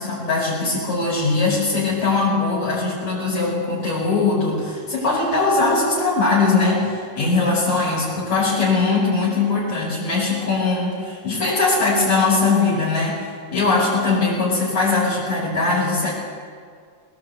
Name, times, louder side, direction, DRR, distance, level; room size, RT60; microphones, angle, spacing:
voice 1, 0.0-16.1, left 3 dB, 60° left, -6 dB, 6.2 m, -20 dB
20.5 x 19.0 x 8.0 m, 2.1 s
omnidirectional pair, 3.6 m